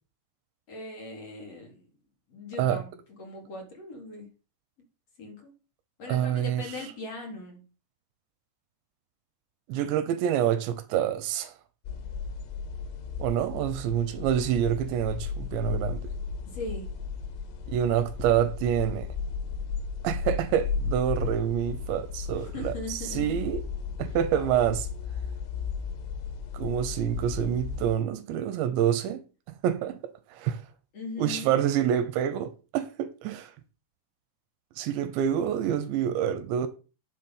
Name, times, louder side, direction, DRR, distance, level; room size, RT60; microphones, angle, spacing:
voice 1, 0.7-1.9 2.3-4.3 5.2-5.5 6.0-7.6 16.5-16.9 22.3-23.4 24.3-24.6 30.9-31.5, left 2 dB, 35° left, 3.9 m, -40 dB
voice 2, 6.1-6.7 9.7-11.5 13.2-16.0 17.7-19.1 20.0-23.6 24.0-24.9 26.5-29.2 29.6-30.0 30.3-30.6 31.2-33.5 34.8-36.7, right 10 dB, 75° right, 2.9 m, -27 dB
sound 1, 11.9-28.0, left 5 dB, 85° left, 4.1 m, -35 dB
10.0 x 7.4 x 5.6 m
omnidirectional pair, 5.7 m